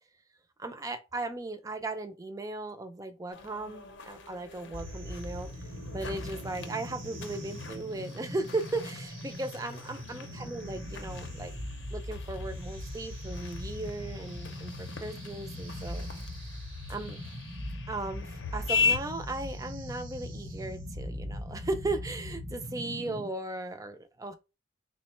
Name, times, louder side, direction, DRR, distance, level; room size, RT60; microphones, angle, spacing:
voice 1, 0.6-5.5 5.9-11.5 11.9-16.1 16.9-17.2 17.9-24.3, right 2 dB, 15° right, 0.4 m, -37 dB
sound 1, 3.3-19.0, left 5 dB, 60° left, 0.6 m, -38 dB
sound 2, 4.7-23.3, left 1 dB, 65° right, 0.8 m, -40 dB
3.7 x 2.1 x 4.2 m
head